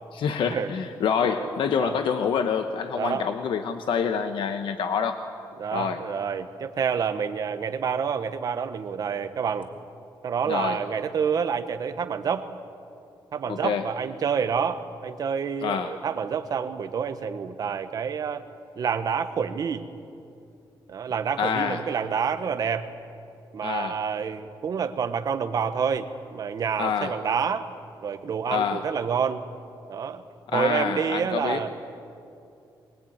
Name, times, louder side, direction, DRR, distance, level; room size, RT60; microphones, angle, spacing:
voice 1, 0.1-5.2 5.7-6.0 10.5-10.8 13.5-13.8 15.6-15.9 21.4-21.8 23.6-24.0 26.8-27.1 28.5-28.8 30.5-31.6, left 7 dB, 85° left, 7 dB, 1.1 m, -26 dB
voice 2, 1.2-2.0 3.0-3.3 5.6-9.7 10.2-12.5 13.3-18.5 18.7-19.9 20.9-22.9 23.5-27.7 28.0-29.4 29.9-30.2 30.5-31.8, right 6 dB, 50° right, 9 dB, 1.2 m, -28 dB
23.0 x 21.0 x 8.8 m, 2.6 s
wide cardioid pair, 180°, 8 cm